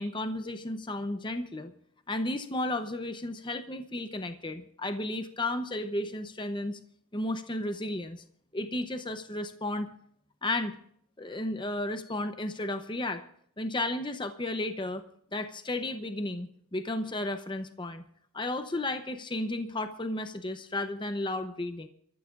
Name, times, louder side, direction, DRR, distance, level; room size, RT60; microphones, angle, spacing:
voice 1, 0.0-1.7 2.1-6.8 7.1-8.2 8.5-9.9 10.4-10.8 11.2-13.2 13.6-15.0 15.3-18.0 18.3-21.9, left 1 dB, 20° left, 8 dB, 0.8 m, -33 dB
26.5 x 14.0 x 2.5 m, 0.66 s
head